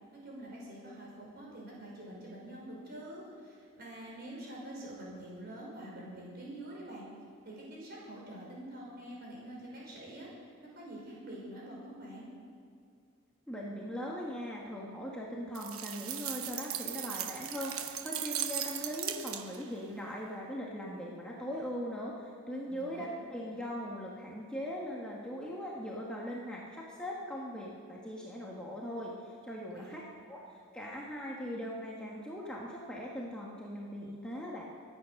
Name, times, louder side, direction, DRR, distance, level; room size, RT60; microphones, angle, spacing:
voice 1, 0.1-7.1 7.4-10.3 10.8-12.3 22.7-23.1 29.7-30.0, right 1 dB, 45° right, -4 dB, 5.3 m, -46 dB
voice 2, 13.5-30.0 30.3-34.6, equal, 5° left, -4 dB, 1.4 m, -40 dB
sound 1, 15.5-19.7, right 10 dB, 75° right, 1.0 m, -38 dB
24.0 x 9.0 x 6.5 m, 2.3 s
head